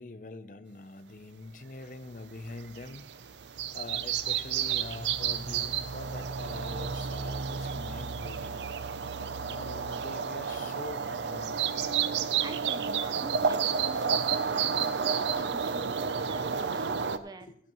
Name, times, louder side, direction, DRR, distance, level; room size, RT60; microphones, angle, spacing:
voice 1, 0.0-3.1 3.7-8.6 9.5-11.8 17.4-17.6, left 2 dB, 45° left, 0.6 m, -44 dB
sound 1, 2.5-17.2, right 6 dB, 85° right, 0.6 m, -31 dB
voice 2, 12.4-17.5, right 2 dB, 20° right, 0.6 m, -46 dB
14.5 x 11.5 x 3.1 m
head